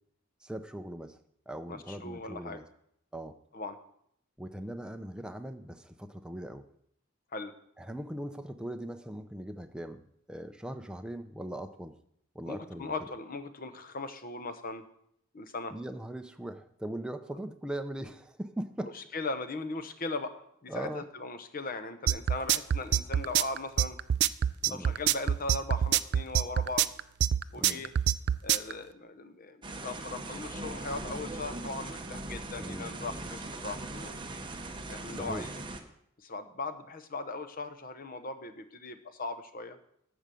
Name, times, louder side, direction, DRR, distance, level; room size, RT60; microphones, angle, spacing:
voice 1, 0.4-1.2 1.5-2.6 3.1-3.4 4.4-6.7 7.8-10.0 10.3-11.9 12.3-12.9 15.7-19.0 20.7-21.0 24.6-24.9 27.5-27.8 32.5-33.3 35.1-35.5, right 1 dB, 5° right, 7 dB, 0.5 m, -40 dB
voice 2, 1.7-2.6 3.5-3.8 7.3-7.5 12.5-14.8 15.3-15.7 18.8-24.0 24.7-26.9 27.5-27.9 28.4-34.1 34.9-35.6 36.2-39.8, left 3 dB, 45° left, 9 dB, 0.9 m, -39 dB
sound 1, 22.1-28.7, right 10 dB, 55° right, 0.3 m, -25 dB
sound 2, 29.6-35.8, right 2 dB, 25° right, 0.9 m, -40 dB
12.5 x 5.0 x 7.6 m, 0.72 s
head